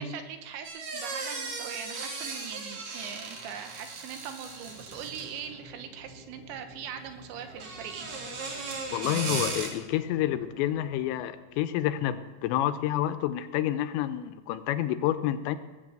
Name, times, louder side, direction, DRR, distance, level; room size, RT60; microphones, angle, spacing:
voice 1, 0.0-8.1, right 8 dB, 85° right, 7 dB, 3.2 m, -41 dB
sound 1, 0.6-5.5 7.4-9.7, right 3 dB, 50° right, 2.9 m, -37 dB
sound 2, 4.6-11.3, equal, 20° right, 1.5 m, -51 dB
voice 2, 8.9-15.6, left 12 dB, 85° left, 11 dB, 2.9 m, -29 dB
19.0 x 7.2 x 7.7 m, 1.3 s
omnidirectional pair, 5.2 m